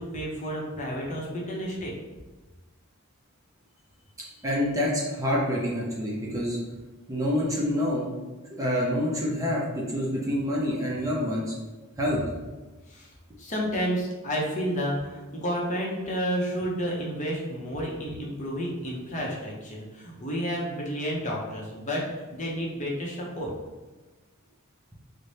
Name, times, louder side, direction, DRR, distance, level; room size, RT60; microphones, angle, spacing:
voice 1, 0.0-1.9 12.9-13.1 13.4-23.5, equal, 35° left, -3 dB, 0.7 m, -31 dB
voice 2, 4.4-6.6 7.1-8.1 8.6-11.5 12.0-12.2, left 1 dB, 15° right, -4 dB, 0.5 m, -27 dB
4.0 x 2.1 x 3.2 m, 1.2 s
head